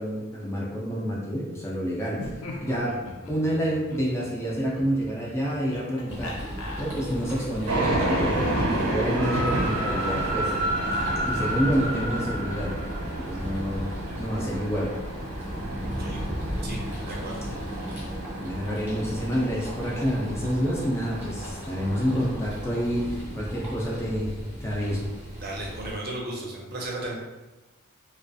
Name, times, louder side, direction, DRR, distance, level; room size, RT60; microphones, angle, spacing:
voice 1, 0.0-3.0 3.3-6.4 6.8-12.7 13.1-13.9 14.2-14.9 17.9-18.0 18.4-24.3 24.6-25.1, equal, 10° left, -4 dB, 0.3 m, -28 dB
Laughter, 2.0-7.5, left 1 dB, 80° left, 0.4 m, -40 dB
sound 1, 6.1-26.0, equal, 10° right, 0.7 m, -36 dB
sound 2, 7.7-22.3, right 1 dB, 90° right, 0.6 m, -30 dB
voice 2, 15.8-16.2 16.6-16.8 17.1-17.4 25.4-27.1, right 1 dB, 45° right, -2 dB, 0.5 m, -35 dB
2.3 x 2.3 x 2.5 m, 1.1 s
head